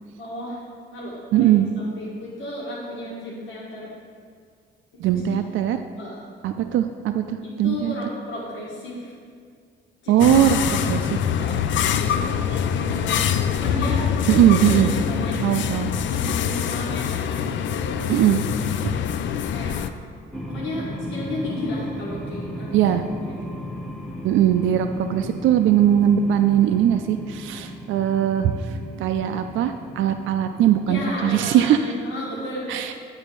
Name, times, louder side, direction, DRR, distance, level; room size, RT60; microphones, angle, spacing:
voice 1, 0.2-0.6 0.9-3.9 5.1-5.4 6.0-6.2 7.4-9.1 10.0-10.9 11.4-11.6 12.0-15.4 16.1-18.2 18.8-19.9 20.5-22.8 23.4-23.5 30.9-32.9, left 1 dB, 90° left, -6 dB, 1.8 m, -33 dB
voice 2, 1.3-1.7 5.0-5.8 6.4-7.9 10.1-11.0 14.3-14.9 15.4-15.9 18.1-18.4 18.8-18.9 22.7-23.0 24.2-31.8 32.7-32.9, right 11 dB, 80° right, 7 dB, 0.4 m, -20 dB
sound 1, 10.2-19.9, left 8 dB, 70° left, 0.4 m, -24 dB
sound 2, 20.3-31.2, equal, 5° left, 0.9 m, -36 dB
8.9 x 4.1 x 6.8 m, 2.1 s
cardioid pair, 90°, 20 cm